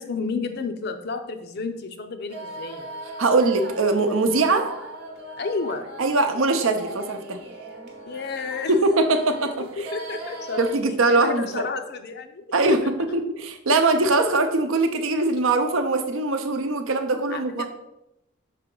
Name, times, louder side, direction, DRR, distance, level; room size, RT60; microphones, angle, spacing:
voice 1, 0.0-2.9 5.4-5.9 8.1-8.7 9.8-10.6 11.1-12.4 17.3-17.7, left 4 dB, 50° left, 7 dB, 0.5 m, -31 dB
sound 1, 2.3-10.8, right 1 dB, 50° right, 0.9 m, -38 dB
voice 2, 3.2-4.7 6.0-7.4 8.7-9.9 10.6-11.6 12.5-17.7, right 3 dB, 70° right, 6 dB, 0.7 m, -22 dB
5.8 x 4.5 x 3.8 m, 0.86 s
head